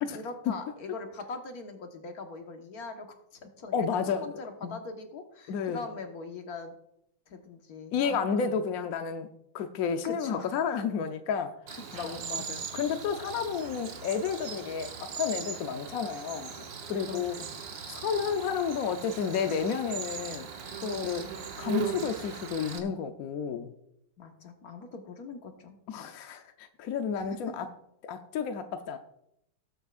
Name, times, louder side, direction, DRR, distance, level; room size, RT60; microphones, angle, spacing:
voice 1, 0.1-6.7 7.3-8.6 10.0-10.5 11.7-12.5 17.1-17.5 24.2-25.7 27.1-27.6, left 3 dB, 50° left, 4 dB, 1.6 m, -42 dB
voice 2, 3.7-4.2 4.6-4.7 5.5-5.8 7.9-9.3 9.5-11.6 11.9-16.6 16.9-17.4 17.9-20.5 20.8-21.3 21.6-23.7 25.9-27.7 28.0-29.0, left 6 dB, 70° left, 7 dB, 0.8 m, -31 dB
Cricket, 11.7-22.8, right 6 dB, 65° right, 1.7 m, -39 dB
19.5 x 8.0 x 2.4 m, 0.78 s
omnidirectional pair, 2.2 m